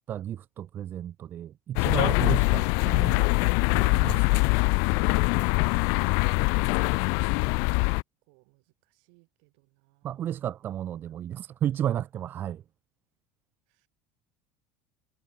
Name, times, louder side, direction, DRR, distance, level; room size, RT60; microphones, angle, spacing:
voice 1, 0.1-3.3 3.7-4.4 10.0-12.6, right 11 dB, 40° right, 1.0 m, -33 dB
sound 1, 1.8-8.0, left 35 dB, 70° left, 0.6 m, -23 dB
voice 2, 5.4-8.0 8.3-10.3 13.7-13.9, right 35 dB, 75° right, 6.6 m, -59 dB
supercardioid pair, 115°, 5 cm